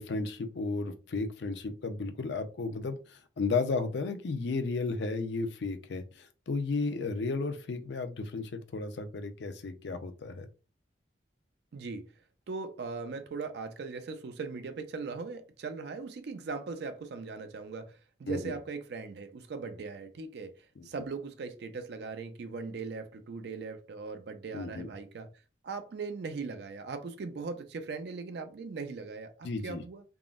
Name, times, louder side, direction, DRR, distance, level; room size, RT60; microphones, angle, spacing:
voice 1, 0.0-10.5 18.3-18.5 20.8-20.9 24.5-24.9 29.4-29.8, left 3 dB, 70° left, 0.5 m, -34 dB
voice 2, 11.7-12.1 12.5-25.3 25.6-30.0, right 4 dB, 60° right, 0.4 m, -39 dB
3.6 x 2.0 x 2.4 m
head